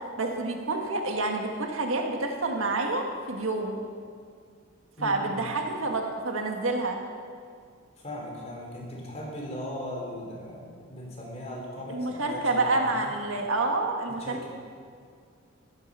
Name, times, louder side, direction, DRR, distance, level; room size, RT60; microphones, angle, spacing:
voice 1, 0.2-3.8 5.0-7.0 11.9-14.5, right 2 dB, 80° right, 2 dB, 1.6 m, -28 dB
voice 2, 5.0-5.5 8.0-13.1 14.1-14.5, left 1 dB, 30° left, -3 dB, 3.7 m, -38 dB
15.5 x 13.0 x 5.5 m, 2.1 s
head